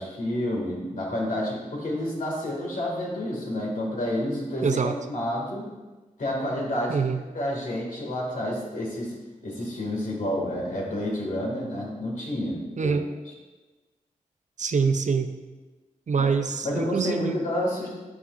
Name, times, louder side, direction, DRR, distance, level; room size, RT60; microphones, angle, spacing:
voice 1, 0.0-5.7 6.2-7.0 7.3-9.1 9.4-12.9 16.2-16.3 16.6-17.9, left 1 dB, 75° left, -3 dB, 2.2 m, -29 dB
voice 2, 4.6-5.0 6.9-7.2 12.8-13.1 14.6-15.3 16.1-17.4, right 5 dB, 60° right, 8 dB, 0.5 m, -25 dB
12.5 x 4.7 x 2.5 m, 1.2 s
cardioid pair, 60°, 14 cm